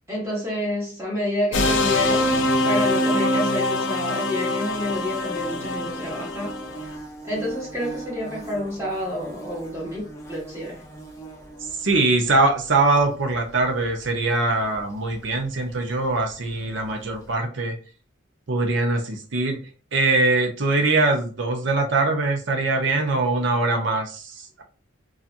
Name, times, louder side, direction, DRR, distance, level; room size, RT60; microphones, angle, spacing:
voice 1, 0.1-6.6 7.2-10.8, left 1 dB, 15° right, 1.0 m, -29 dB
sound 1, 1.5-6.9, left 1 dB, 65° left, 0.4 m, -23 dB
Bird / Buzz, 4.7-17.3, right 2 dB, 15° left, 0.6 m, -42 dB
voice 2, 11.8-17.8 18.5-19.6 19.9-24.6, right 3 dB, 65° right, 0.7 m, -22 dB
2.7 x 2.4 x 2.5 m
head